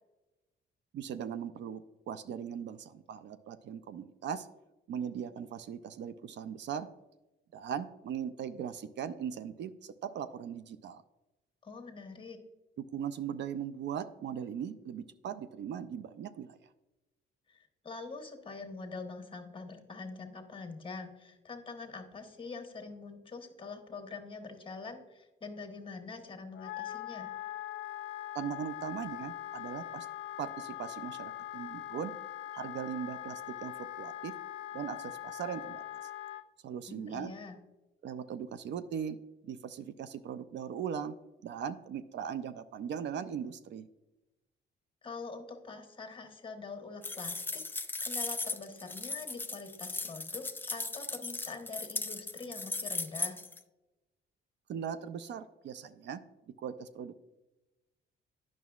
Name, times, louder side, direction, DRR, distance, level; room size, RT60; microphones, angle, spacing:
voice 1, 0.9-4.5 4.9-6.9 7.5-11.0 12.8-16.6 28.3-30.1 30.4-32.2 32.5-34.3 34.7-36.1 36.6-37.3 38.0-39.2 39.4-41.1 41.4-43.9 54.7-57.2, right 8 dB, 65° right, 11 dB, 0.4 m, -39 dB
voice 2, 11.6-12.4 17.5-27.3 36.9-37.6 45.0-53.4, left 4 dB, 25° left, 4 dB, 1.2 m, -44 dB
Wind instrument woodwind instrument, 26.5-36.4, left 13 dB, 80° left, 0.4 m, -42 dB
sound 1, 47.0-53.6, left 3 dB, 10° left, 0.4 m, -37 dB
9.2 x 6.0 x 2.4 m, 1.0 s
cardioid pair, 90°, 20 cm